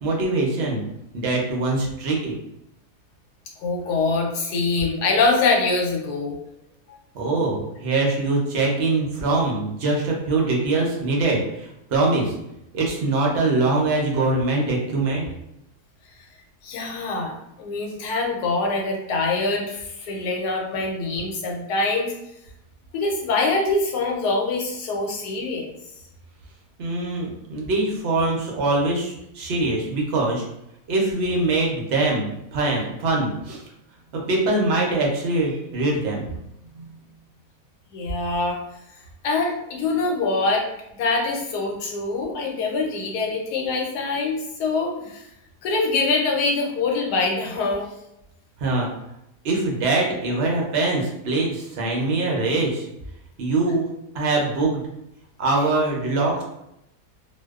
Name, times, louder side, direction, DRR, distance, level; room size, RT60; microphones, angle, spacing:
voice 1, 0.0-0.9 1.1-2.4 7.1-12.3 12.7-15.3 26.8-30.4 30.9-33.6 34.1-36.3 36.7-37.0 48.6-48.9 49.4-52.9 53.4-53.9 54.1-54.8 55.4-56.4, right 2 dB, 70° right, -1 dB, 0.6 m, -23 dB
voice 2, 3.6-6.4 6.9-7.0 16.6-22.1 22.9-25.7 37.9-38.6 39.2-40.7 40.9-45.3 45.6-47.9, left 3 dB, 80° left, 0 dB, 1.2 m, -24 dB
2.6 x 2.0 x 2.3 m, 0.82 s
omnidirectional pair, 1.7 m